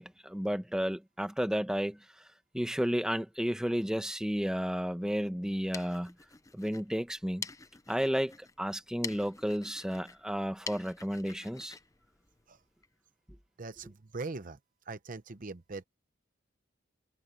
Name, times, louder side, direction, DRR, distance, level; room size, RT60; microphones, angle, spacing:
voice 1, 0.0-2.3 2.5-6.1 6.5-7.5 7.9-11.8, equal, 5° right, 1.2 m, -32 dB
sound 1, 5.4-12.9, left 4 dB, 15° left, 0.6 m, -47 dB
voice 2, 13.6-14.6 14.8-15.8, right 3 dB, 45° right, 0.8 m, -41 dB
head